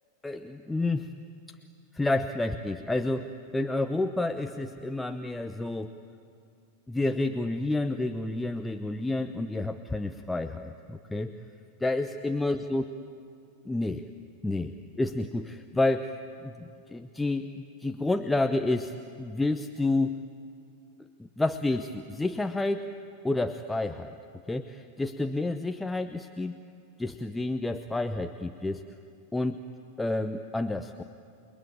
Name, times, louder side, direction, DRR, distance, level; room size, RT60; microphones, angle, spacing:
voice 1, 0.2-1.1 1.9-6.0 6.9-11.4 11.8-12.8 13.6-14.1 14.4-20.2 21.2-22.9 23.2-24.1 24.5-26.6 27.0-28.8 29.3-29.6 30.0-31.0, left 2 dB, 5° left, 7 dB, 0.8 m, -30 dB
29.0 x 22.0 x 8.7 m, 2.4 s
figure-of-eight pair, 90°, 0 cm